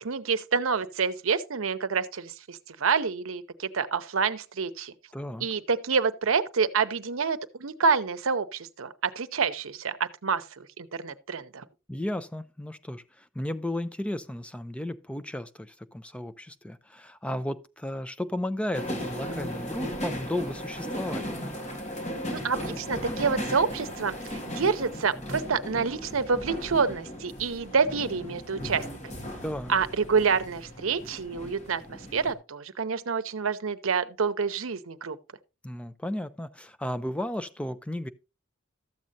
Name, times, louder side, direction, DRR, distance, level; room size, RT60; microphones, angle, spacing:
voice 1, 0.0-4.9 5.4-11.6 22.3-29.2 29.7-35.2, right 5 dB, 80° right, 0.7 m, -28 dB
voice 2, 5.1-5.5 11.9-21.3 29.4-29.7 35.6-38.1, left 1 dB, 5° left, 0.4 m, -34 dB
sound 1, 18.7-32.3, equal, 35° left, 1.7 m, -36 dB
13.0 x 7.5 x 2.7 m
head